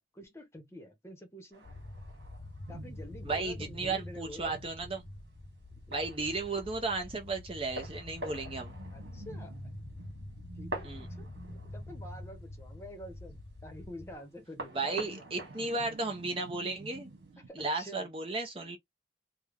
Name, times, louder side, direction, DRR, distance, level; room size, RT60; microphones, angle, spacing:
voice 1, 0.0-1.6 2.7-4.5 8.3-8.5 8.9-9.6 10.6-15.7 17.5-18.1 18.5-18.7, left 1 dB, 15° left, 0.9 m, -48 dB
sound 1, 1.5-17.3, right 1 dB, 65° right, 1.6 m, -49 dB
sound 2, 1.6-14.2, left 1 dB, 40° left, 0.5 m, -46 dB
sound 3, 2.7-17.5, right 3 dB, 90° right, 0.5 m, -53 dB
voice 2, 3.2-5.0 5.9-8.7 10.8-11.1 14.7-17.1 17.6-18.8, right 3 dB, 30° right, 0.6 m, -34 dB
3.3 x 2.2 x 3.5 m
head